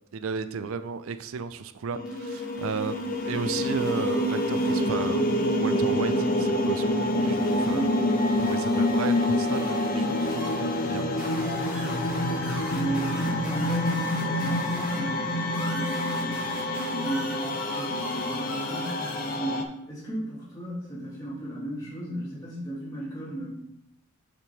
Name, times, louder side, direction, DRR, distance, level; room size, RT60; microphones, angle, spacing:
voice 1, 0.1-7.9 8.4-11.4, right 5 dB, 70° right, 11 dB, 0.4 m, -34 dB
sound 1, 1.9-19.6, left 1 dB, 40° left, 0.6 m, -27 dB
sound 2, 2.1-15.0 15.5-19.4, right 1 dB, 5° right, 2.3 m, -42 dB
voice 2, 7.7-8.0 12.6-15.3 15.7-19.0 19.3-23.5, right 1 dB, 15° left, -8 dB, 2.7 m, -34 dB
6.9 x 5.5 x 3.6 m, 0.81 s
head